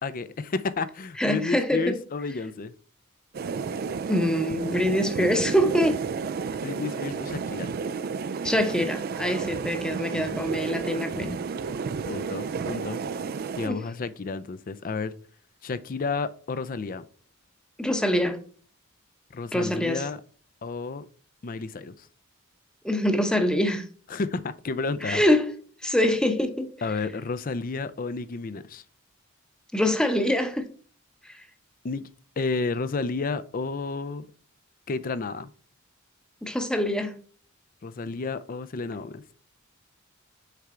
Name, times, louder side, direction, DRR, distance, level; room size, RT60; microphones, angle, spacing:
voice 1, 0.0-2.7 6.5-7.8 10.1-10.5 12.0-13.0 13.6-15.1 15.6-17.0 19.3-20.2 20.6-21.0 21.4-22.1 24.1-25.2 26.8-28.8 31.8-32.1 32.4-34.3 34.9-35.5 37.8-39.2, left 4 dB, 40° left, 0.5 m, -31 dB
voice 2, 1.2-2.0 4.1-6.0 8.4-11.4 13.6-13.8 17.8-18.4 19.5-20.1 22.8-23.9 25.0-25.6 25.8-26.7 29.7-30.7 31.2-31.4 36.4-37.2, left 1 dB, 5° left, 0.8 m, -24 dB
sound 1, 3.3-13.7, right 5 dB, 45° right, 0.3 m, -32 dB
6.6 x 4.5 x 3.7 m
head